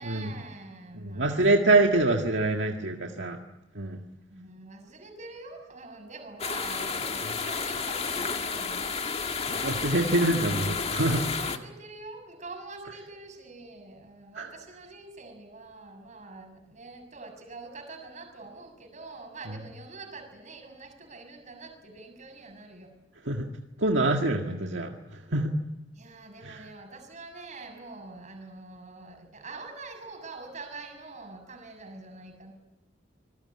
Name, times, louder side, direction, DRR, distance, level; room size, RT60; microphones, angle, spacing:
voice 1, 0.0-1.8 2.1-2.5 4.3-9.1 11.3-22.9 25.9-32.5, right 3 dB, 40° right, 4 dB, 6.7 m, -45 dB
voice 2, 0.9-3.4 3.8-4.0 9.6-11.2 14.4-14.5 23.3-23.5 23.8-24.9 25.3-25.5 26.4-26.7, right 2 dB, 70° right, 2 dB, 1.9 m, -25 dB
sound 1, 6.4-11.6, left 5 dB, 35° left, 1.8 m, -31 dB
26.5 x 20.5 x 9.8 m, 1.0 s
head